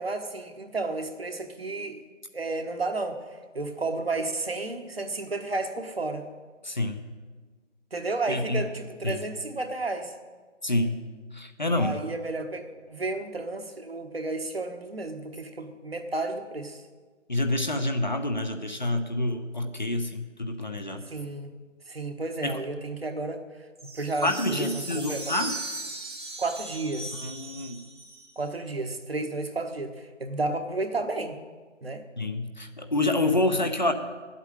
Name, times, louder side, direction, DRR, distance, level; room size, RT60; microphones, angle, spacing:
voice 1, 0.0-2.0 2.3-3.2 3.5-6.2 7.9-10.1 11.8-16.8 21.1-21.5 21.9-23.4 23.9-25.3 26.4-27.2 28.4-31.4 31.8-32.0, right 2 dB, 50° right, 5 dB, 1.4 m, -32 dB
voice 2, 6.6-7.0 8.3-8.6 9.0-9.2 10.6-11.0 11.3-12.0 17.3-21.0 22.4-22.6 24.2-25.5 27.2-27.8 32.2-33.9, left 2 dB, 40° left, 6 dB, 0.7 m, -27 dB
sound 1, 23.8-28.5, right 2 dB, 20° right, 1.1 m, -38 dB
10.0 x 8.2 x 8.9 m, 1.4 s
figure-of-eight pair, 165°, 37 cm